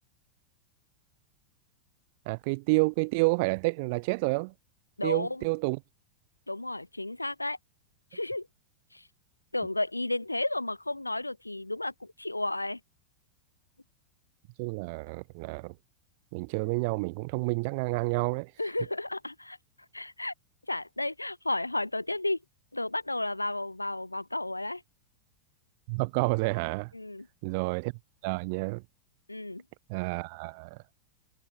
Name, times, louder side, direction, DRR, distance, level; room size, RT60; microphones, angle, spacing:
voice 1, 2.3-4.5 5.0-5.8 14.6-15.8 16.3-18.5 25.9-26.9 27.4-27.9 28.2-28.8 29.9-30.8, right 29 dB, 45° right, 1.7 m, -29 dB
voice 2, 5.0-5.4 6.5-7.6 8.1-8.5 8.9-9.1 9.5-12.8 18.6-19.6 19.9-20.3 20.7-22.4 22.7-24.8 26.9-27.3 29.3-29.6, left 2 dB, 85° left, 1.7 m, -32 dB
figure-of-eight pair, 90°, 0 cm